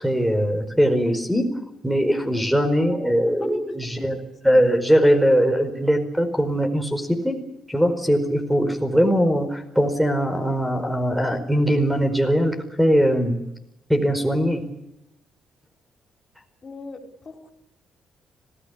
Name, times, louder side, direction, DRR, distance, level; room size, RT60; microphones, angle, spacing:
voice 1, 0.0-1.4 1.8-4.2 4.4-7.4 7.7-13.4 13.9-14.6, equal, 5° right, 8 dB, 4.7 m, -21 dB
voice 2, 4.0-4.6 16.6-17.0 17.2-17.5, left 4 dB, 40° left, 5 dB, 4.8 m, -39 dB
26.0 x 17.0 x 8.5 m, 0.85 s
cardioid pair, 90°, 0 cm